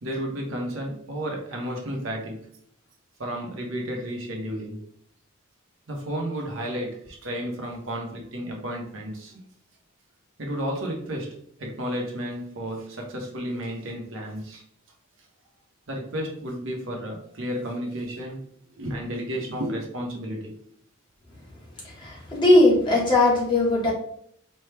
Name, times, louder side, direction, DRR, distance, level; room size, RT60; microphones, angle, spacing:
voice 1, 0.0-2.4 3.2-4.8 5.9-9.4 10.4-14.6 15.9-20.6, equal, 60° right, 0 dB, 0.9 m, -32 dB
voice 2, 21.8-23.9, left 2 dB, 20° left, -4 dB, 1.1 m, -19 dB
4.3 x 2.3 x 3.3 m, 0.67 s
head